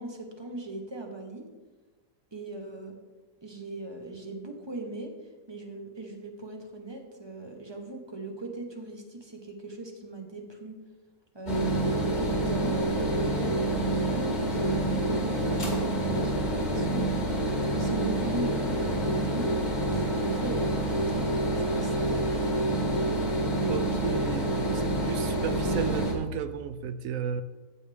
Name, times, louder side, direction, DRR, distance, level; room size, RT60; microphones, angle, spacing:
voice 1, 0.0-1.4 2.3-2.9 3.4-5.1 5.5-10.8 11.3-22.7, right 2 dB, 20° right, 2 dB, 1.2 m, -39 dB
sound 1, 11.5-26.1, right 1 dB, 30° left, 1.9 m, -27 dB
voice 2, 23.7-27.4, right 8 dB, 70° right, 11 dB, 0.9 m, -34 dB
14.5 x 6.9 x 3.5 m, 1.2 s
omnidirectional pair, 1.6 m